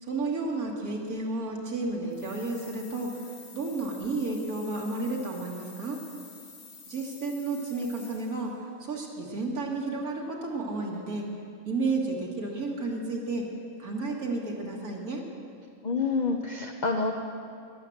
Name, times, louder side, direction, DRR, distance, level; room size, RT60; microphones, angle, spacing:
voice 1, 0.0-6.0 6.9-11.3 11.7-13.5 13.8-15.2, right 3 dB, 75° right, -2 dB, 2.4 m, -32 dB
sound 1, 2.1-8.5, left 4 dB, 75° left, 2.4 m, -50 dB
voice 2, 15.8-17.1, left 4 dB, 45° left, 3 dB, 0.6 m, -27 dB
13.5 x 11.0 x 7.8 m, 2.5 s
omnidirectional pair, 1.6 m